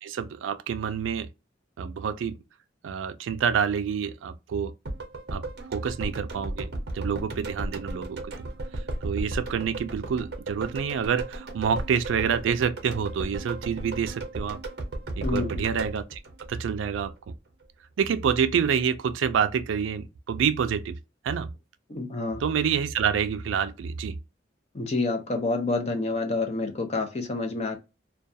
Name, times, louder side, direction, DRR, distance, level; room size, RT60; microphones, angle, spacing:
voice 1, 0.0-1.3 1.8-2.4 2.8-4.7 5.3-5.4 5.7-8.3 9.0-14.6 15.2-16.2 16.5-17.1 18.0-21.0 21.2-21.5 22.4-24.2, right 7 dB, 85° right, 0.3 m, -27 dB
sound 1, 4.9-17.0 17.3-17.4, right 2 dB, 55° right, 0.7 m, -36 dB
voice 2, 15.2-15.7 21.9-22.4 24.7-27.8, left 3 dB, 35° left, 0.5 m, -28 dB
2.3 x 2.2 x 2.6 m
head